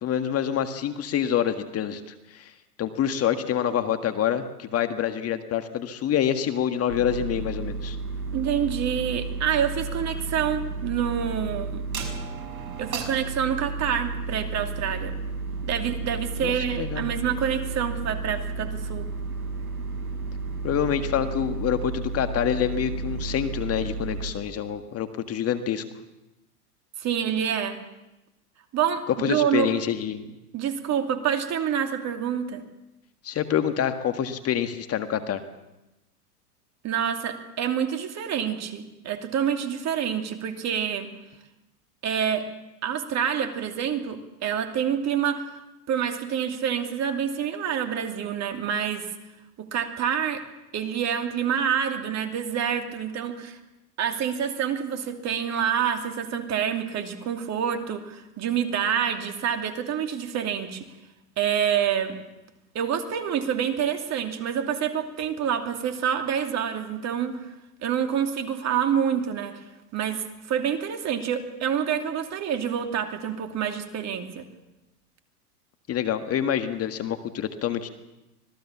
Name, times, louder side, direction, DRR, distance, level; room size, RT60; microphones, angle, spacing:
voice 1, 0.0-2.0 2.3-2.5 2.8-8.0 16.4-17.1 20.6-25.8 29.2-30.3 33.2-35.4 75.9-77.9, left 9 dB, 30° left, 8 dB, 1.7 m, -26 dB
sound 1, 6.9-24.3, right 4 dB, 65° right, 6.3 m, -32 dB
voice 2, 8.3-11.8 12.8-15.1 15.7-19.1 27.0-27.8 28.7-29.7 30.5-32.6 36.8-41.1 42.0-42.4 42.8-45.4 45.9-49.1 49.6-50.4 50.7-53.6 54.0-60.9 61.4-62.1 62.7-67.4 67.8-69.6 69.9-74.4, right 8 dB, 35° right, 6 dB, 2.8 m, -27 dB
25.5 x 19.0 x 7.3 m, 0.97 s
hypercardioid pair, 105°, 47 cm